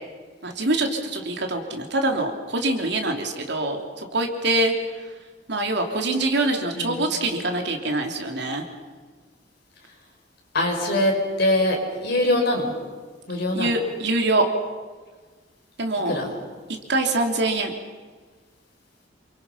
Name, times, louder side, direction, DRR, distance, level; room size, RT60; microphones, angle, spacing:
voice 1, 0.4-4.7 5.5-8.6 13.5-14.5 15.8-16.2 16.9-17.7, right 2 dB, 65° right, 3 dB, 3.1 m, -24 dB
voice 2, 10.5-11.1 11.4-11.8 12.0-12.7 13.3-13.7 16.1-16.3, left 1 dB, 60° left, 0 dB, 5.7 m, -22 dB
28.0 x 24.0 x 5.8 m, 1.5 s
head